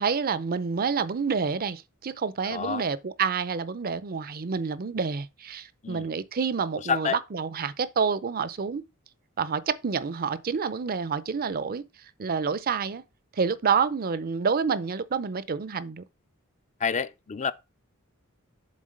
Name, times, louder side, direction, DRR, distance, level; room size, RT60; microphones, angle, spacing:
voice 1, 0.0-8.8 9.4-11.9 12.2-13.0 13.3-16.0, right 5 dB, 45° right, 0.5 m, -28 dB
voice 2, 2.4-2.8 5.8-6.1 6.9-7.2 16.8-17.5, left 6 dB, 35° left, 0.4 m, -28 dB
7.5 x 3.7 x 6.5 m
head